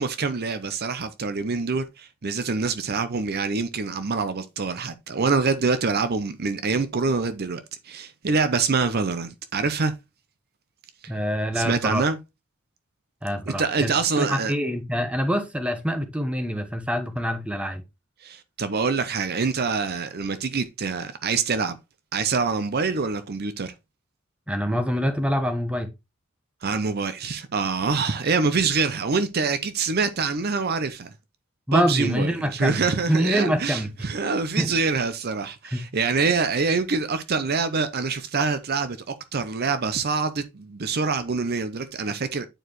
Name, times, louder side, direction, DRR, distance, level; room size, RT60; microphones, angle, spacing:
voice 1, 0.0-9.9 11.5-12.2 13.6-14.5 18.2-21.8 22.1-23.7 26.6-31.1 31.7-42.5, right 4 dB, 50° right, 0.6 m, -25 dB
voice 2, 11.1-12.1 13.2-17.8 24.5-25.9 31.7-33.9 34.6-34.8 35.7-35.8, equal, 5° right, 1.0 m, -25 dB
8.9 x 4.7 x 3.1 m
head